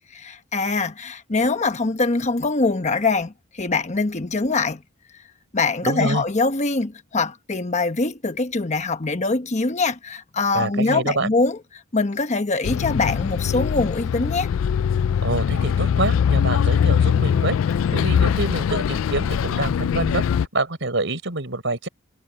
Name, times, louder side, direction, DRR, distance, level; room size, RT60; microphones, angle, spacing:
voice 1, 0.2-4.8 5.5-11.6 11.9-14.5, left 3 dB, 35° left, 1.1 m, -23 dB
voice 2, 5.8-6.2 10.5-11.3 15.2-17.6 17.9-20.2 20.5-21.9, right 2 dB, 65° right, 5.5 m, -26 dB
Bus, 12.6-20.5, left 7 dB, 90° left, 0.3 m, -21 dB
head